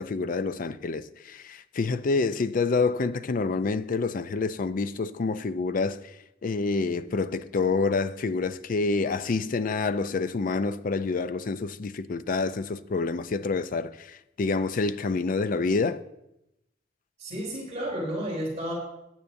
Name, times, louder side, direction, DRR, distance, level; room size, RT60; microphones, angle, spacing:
voice 1, 0.0-16.0, left 4 dB, 45° left, 0.4 m, -28 dB
voice 2, 17.2-18.7, equal, 35° right, 3.6 m, -32 dB
16.0 x 10.0 x 2.6 m
head